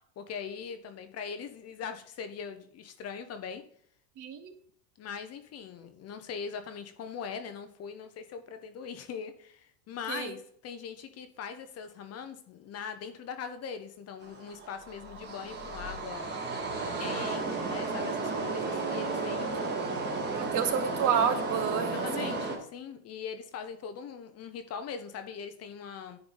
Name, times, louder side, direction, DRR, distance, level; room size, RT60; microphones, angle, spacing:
voice 1, 0.2-3.6 5.0-16.3 16.7-19.8 21.9-26.2, left 6 dB, 30° left, 9 dB, 0.8 m, -41 dB
voice 2, 4.2-4.5 10.1-10.3 19.8-19.9 20.3-22.4, right 7 dB, 40° right, 9 dB, 1.0 m, -30 dB
sound 1, 14.2-22.6, right 3 dB, 20° right, 1.8 m, -33 dB
10.0 x 4.7 x 3.8 m, 0.63 s
supercardioid pair, 130°, 48 cm